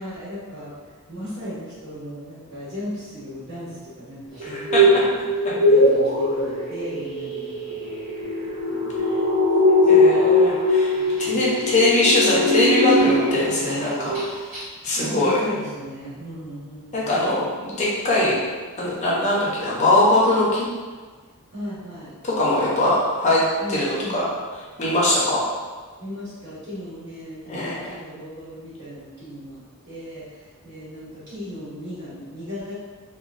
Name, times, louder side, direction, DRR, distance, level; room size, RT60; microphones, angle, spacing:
voice 1, 0.0-5.2 5.6-8.0 8.4-9.3 9.9-10.2 10.8-11.6 14.9-17.5 21.5-22.1 23.6-24.3 26.0-32.7, equal, 45° right, -12 dB, 1.4 m, -37 dB
voice 2, 4.4-4.8 9.8-10.9 11.2-14.2 14.8-15.4 16.9-18.4 18.8-20.7 22.2-23.4 23.7-24.3 24.8-25.4 27.4-27.9, left 1 dB, 30° left, -6 dB, 0.6 m, -21 dB
sound 1, 4.4-13.6 13.9-14.3 14.5-14.6, left 1 dB, 65° right, 1.2 m, -20 dB
2.9 x 2.2 x 2.4 m, 1.4 s
head